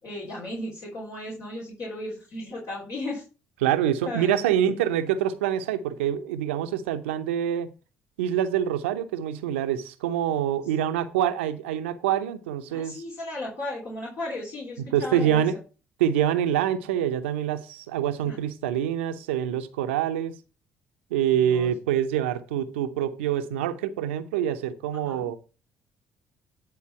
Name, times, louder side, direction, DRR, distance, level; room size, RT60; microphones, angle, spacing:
voice 1, 0.0-3.2 4.0-4.5 12.7-15.5 18.3-18.4 21.3-21.7 25.0-25.4, left 1 dB, 55° left, 3.2 m, -35 dB
voice 2, 3.6-7.7 8.2-13.0 14.8-15.6 16.0-20.4 21.1-25.4, right 10 dB, 80° right, 0.7 m, -26 dB
9.8 x 4.0 x 5.6 m
hypercardioid pair, 50°, 6 cm